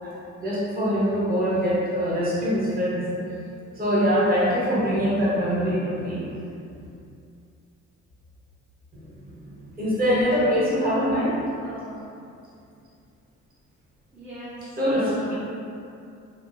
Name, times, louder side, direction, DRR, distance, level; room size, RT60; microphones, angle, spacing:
voice 1, 0.0-3.0 3.7-6.4 8.9-9.1 9.4-9.5 9.8-11.3 14.8-15.3, equal, 30° right, -9 dB, 1.0 m, -23 dB
voice 2, 10.8-11.4 11.6-12.0 14.1-15.3, right 1 dB, 5° right, -12 dB, 0.6 m, -39 dB
2.6 x 2.0 x 2.6 m, 2.5 s
cardioid pair, 90°, 30 cm